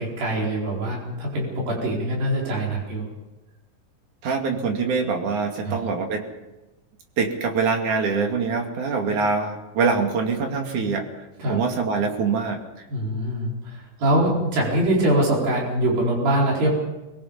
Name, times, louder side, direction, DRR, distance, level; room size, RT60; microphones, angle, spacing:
voice 1, 0.0-3.1 5.6-5.8 11.4-11.6 12.9-16.7, right 1 dB, 85° right, -3 dB, 6.3 m, -23 dB
voice 2, 4.2-6.3 7.2-11.0 11.5-12.6, right 5 dB, 60° right, 3 dB, 3.7 m, -24 dB
24.0 x 21.0 x 5.5 m, 1.0 s
omnidirectional pair, 4.0 m